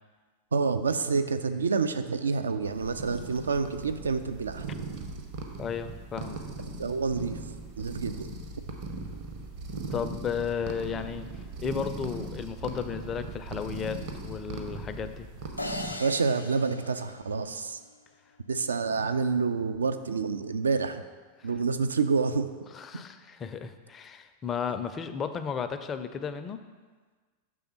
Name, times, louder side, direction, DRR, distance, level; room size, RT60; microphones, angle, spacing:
voice 1, 0.5-4.7 6.8-7.4 7.8-8.3 16.0-17.8 18.5-21.0 21.4-22.5, right 4 dB, 70° right, 9 dB, 0.3 m, -28 dB
sound 1, 2.6-15.9, right 3 dB, 45° right, 0.7 m, -39 dB
voice 2, 5.6-6.4 9.9-11.3 11.6-15.3 21.4-21.5 22.7-26.6, left 7 dB, 25° left, 9 dB, 0.4 m, -34 dB
sound 2, 15.6-17.9, left 1 dB, 90° left, 0.4 m, -39 dB
6.2 x 3.5 x 5.7 m, 1.4 s
figure-of-eight pair, 90°, 0 cm